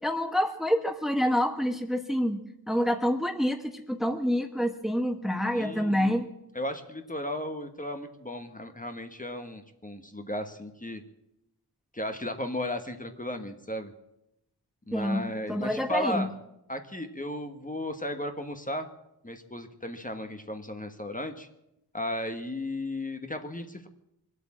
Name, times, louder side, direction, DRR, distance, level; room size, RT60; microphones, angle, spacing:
voice 1, 0.0-6.3 14.9-16.3, equal, ahead, 6 dB, 1.3 m, -27 dB
voice 2, 5.5-6.2 6.5-11.0 11.9-13.9 14.9-16.3 16.7-18.9 19.2-21.5 21.9-23.9, left 1 dB, 20° left, 6 dB, 1.4 m, -35 dB
22.5 x 8.3 x 7.3 m, 0.85 s
wide cardioid pair, 65°, 39 cm